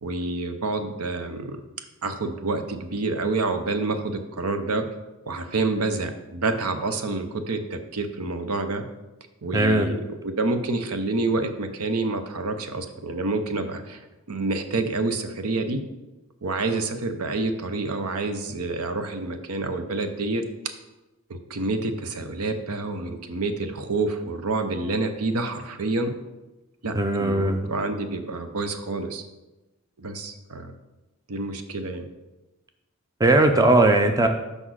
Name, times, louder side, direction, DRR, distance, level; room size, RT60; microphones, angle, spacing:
voice 1, 0.0-1.6 2.0-4.9 5.3-8.8 9.4-14.0 14.3-15.8 16.4-20.4 21.3-26.1 26.8-29.2 30.0-30.7 31.3-32.0, right 3 dB, 90° right, 8 dB, 0.8 m, -28 dB
voice 2, 9.5-9.9 26.9-27.7 33.2-34.3, right 2 dB, 15° right, 6 dB, 0.5 m, -19 dB
6.1 x 5.2 x 6.4 m, 1.1 s
head